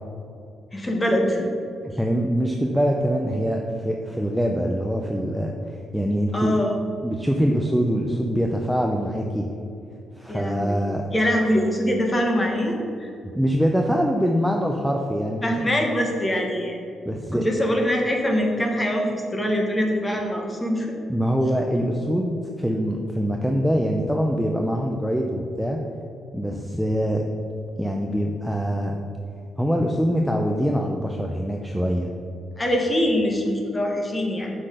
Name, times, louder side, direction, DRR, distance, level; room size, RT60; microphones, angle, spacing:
voice 1, 0.7-1.5 6.3-6.8 10.3-10.8 11.1-13.1 15.4-16.8 17.3-20.9 32.6-34.5, equal, 15° left, 2 dB, 1.2 m, -23 dB
voice 2, 2.0-6.6 7.0-9.5 10.2-11.0 13.3-15.8 17.1-17.5 21.1-25.8 26.3-27.2 27.8-29.0 29.6-32.1, equal, ahead, 1 dB, 0.5 m, -24 dB
6.6 x 5.8 x 4.9 m, 2.6 s
cardioid pair, 115°, 0 cm